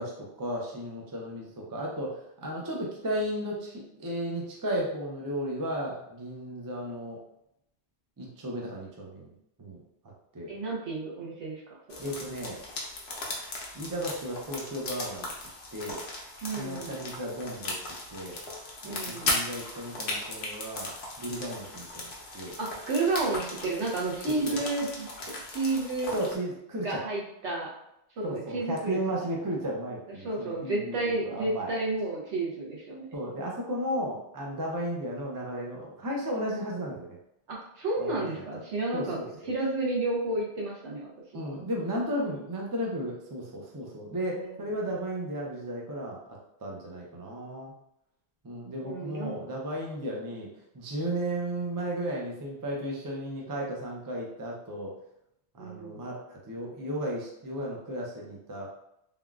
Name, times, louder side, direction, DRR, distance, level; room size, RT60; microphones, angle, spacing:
voice 1, 0.0-7.2 8.2-9.3 9.6-9.8 10.3-10.5 12.0-12.6 13.7-15.3 15.7-16.0 16.6-17.8 18.1-18.4 18.8-20.9 21.2-22.5 24.4-24.6 26.1-27.0 28.2-31.7 33.1-37.1 38.0-38.4 38.9-39.3 41.3-47.7 48.4-50.5 50.7-54.9 55.5-58.7, equal, 30° right, -2 dB, 0.3 m, -34 dB
voice 2, 10.5-12.0 16.4-17.0 18.8-19.4 22.6-26.1 26.8-27.7 28.2-29.2 30.2-33.1 37.5-39.2 39.5-41.4 44.3-44.5 48.8-49.3 55.6-56.1, right 2 dB, 70° right, -4 dB, 1.1 m, -31 dB
sound 1, 11.9-26.4, left 2 dB, 65° left, 0.9 m, -37 dB
3.5 x 2.3 x 2.3 m, 0.79 s
omnidirectional pair, 1.2 m